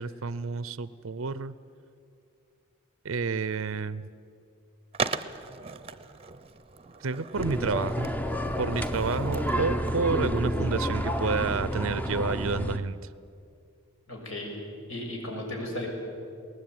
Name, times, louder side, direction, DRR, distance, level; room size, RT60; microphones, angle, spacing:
voice 1, 0.0-1.5 3.0-4.1 7.0-8.1 8.6-13.0, right 4 dB, 70° right, 16 dB, 0.6 m, -30 dB
Skateboard, 4.9-10.4, right 5 dB, 25° right, 0.8 m, -38 dB
sound 1, 7.3-12.8, equal, 10° left, 0.7 m, -30 dB
voice 2, 14.1-14.5 14.9-15.9, left 1 dB, 70° left, 0 dB, 6.6 m, -35 dB
20.5 x 19.0 x 9.5 m, 2.5 s
head